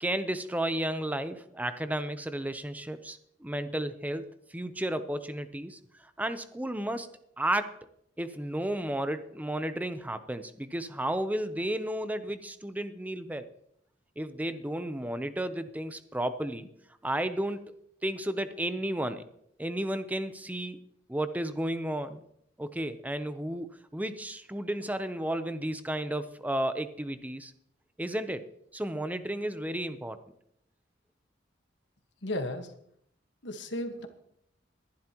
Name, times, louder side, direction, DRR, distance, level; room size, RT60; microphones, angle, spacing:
voice 1, 0.0-7.1 7.4-7.8 8.2-13.5 14.2-16.7 17.0-19.2 19.6-20.8 21.1-22.2 22.6-27.5 28.0-28.4 28.7-30.2, right 1 dB, 10° right, 10 dB, 0.7 m, -33 dB
voice 2, 32.2-32.7 33.4-34.1, left 1 dB, 70° left, 6 dB, 1.5 m, -34 dB
21.0 x 11.5 x 3.0 m, 0.72 s
head